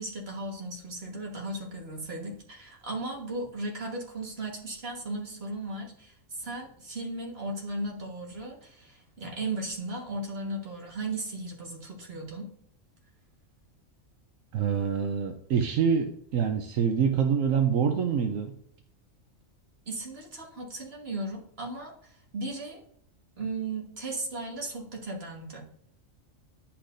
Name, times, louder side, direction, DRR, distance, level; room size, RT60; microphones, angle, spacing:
voice 1, 0.0-12.5 19.9-21.9 22.3-22.8 23.4-25.6, right 2 dB, 50° right, -1 dB, 1.7 m, -36 dB
voice 2, 14.5-18.5, right 7 dB, 80° right, 5 dB, 1.1 m, -26 dB
9.9 x 5.6 x 2.6 m, 0.66 s
omnidirectional pair, 1.4 m